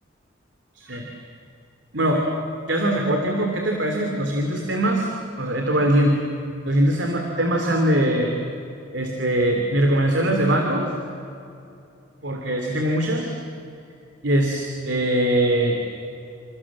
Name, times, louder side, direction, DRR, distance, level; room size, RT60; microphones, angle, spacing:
voice 1, 0.7-1.1 1.9-2.2 2.7-5.1 5.4-6.2 6.6-8.3 8.9-10.9 12.2-13.3 14.2-15.8, right 1 dB, 65° right, 2 dB, 3.2 m, -21 dB
29.0 x 27.5 x 7.5 m, 2.7 s
head